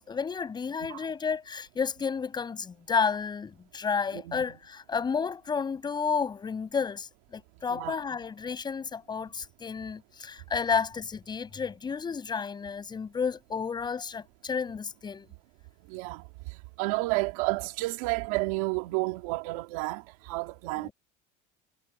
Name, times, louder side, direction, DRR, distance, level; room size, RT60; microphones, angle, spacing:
voice 1, 0.0-15.3 20.8-20.9, left 6 dB, 25° left, 7.9 m, -31 dB
voice 2, 4.1-4.4 7.7-8.0 15.9-16.3 16.8-20.9, right 23 dB, 90° right, 2.9 m, -31 dB
cardioid pair, 125°, 18 cm